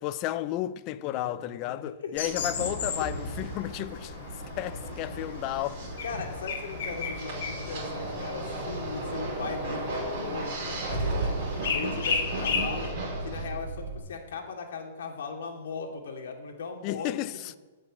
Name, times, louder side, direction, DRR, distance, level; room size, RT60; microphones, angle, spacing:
voice 1, 0.0-4.3 4.6-5.9 16.8-17.6, left 14 dB, 25° left, 0.4 m, -33 dB
voice 2, 0.9-1.3 1.7-2.5 6.0-12.9 13.2-17.1, left 4 dB, 75° left, 2.5 m, -38 dB
sound 1, 2.2-12.9, left 5 dB, 55° left, 2.6 m, -36 dB
sound 2, 2.3-13.4, right 1 dB, 35° right, 5.3 m, -36 dB
Car / Engine starting / Idling, 10.5-14.0, right 3 dB, 50° right, 2.8 m, -34 dB
15.0 x 6.6 x 9.2 m
hypercardioid pair, 175°, 0 cm